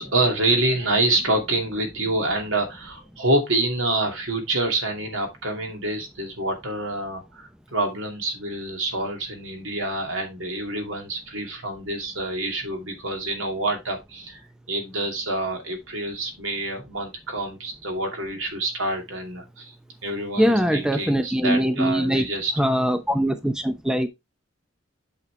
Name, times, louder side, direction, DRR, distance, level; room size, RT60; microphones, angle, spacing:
voice 1, 0.0-14.4 14.7-19.7 20.0-22.5, right 2 dB, 85° right, 2.5 m, -27 dB
voice 2, 20.4-22.3 22.6-24.1, equal, 5° right, 0.7 m, -22 dB
8.4 x 6.0 x 3.2 m
head